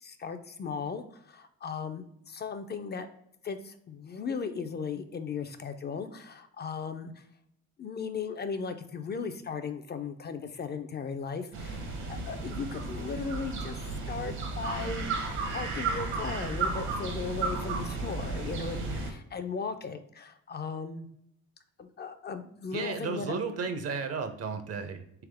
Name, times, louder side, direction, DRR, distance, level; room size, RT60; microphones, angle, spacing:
voice 1, 0.0-3.1 3.4-7.2 7.8-13.8 14.1-15.1 15.5-21.1 21.8-23.4, left 5 dB, 35° left, 8 dB, 0.4 m, -37 dB
sound 1, 11.5-19.1, right 4 dB, 70° right, 1.1 m, -33 dB
voice 2, 22.7-25.3, right 5 dB, 55° right, 8 dB, 0.7 m, -34 dB
3.5 x 3.5 x 3.4 m, 0.73 s
cardioid pair, 90°, 30 cm